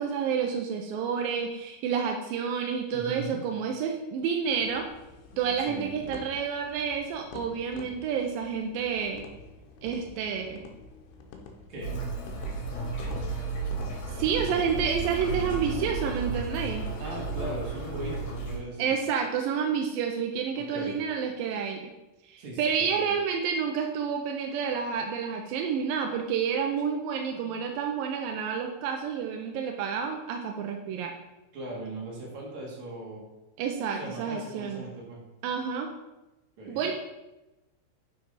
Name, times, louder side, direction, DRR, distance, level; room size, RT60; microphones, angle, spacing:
voice 1, 0.0-4.8 5.4-9.2 9.8-10.7 14.1-16.8 18.8-21.8 22.3-31.1 33.6-34.8 35.4-35.9 36.7-36.9, right 6 dB, 80° right, 3 dB, 2.1 m, -29 dB
voice 2, 2.9-3.4 5.6-6.1 11.7-11.9 17.0-18.9 20.5-21.0 22.4-23.1 31.5-33.3 33.9-35.2 36.6-36.9, right 1 dB, 50° right, -4 dB, 3.3 m, -39 dB
sound 1, 4.6-16.1, left 4 dB, 80° left, 3.0 m, -48 dB
sound 2, 11.8-18.6, right 3 dB, 55° left, 2.7 m, -33 dB
10.5 x 6.1 x 4.1 m, 0.99 s
omnidirectional pair, 4.9 m